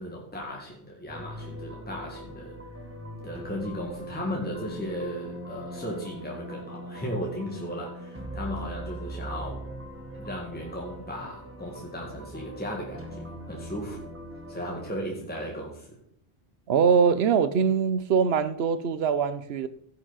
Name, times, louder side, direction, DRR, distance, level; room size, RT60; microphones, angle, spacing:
voice 1, 0.0-2.6 3.2-9.6 10.2-14.1 14.5-16.0, equal, 10° left, 1.8 m, -36 dB
sound 1, 1.1-15.0, right 1 dB, 10° right, 1.2 m, -40 dB
voice 2, 16.7-19.7, right 6 dB, 70° right, 0.9 m, -23 dB
15.5 x 6.2 x 4.0 m
omnidirectional pair, 1.1 m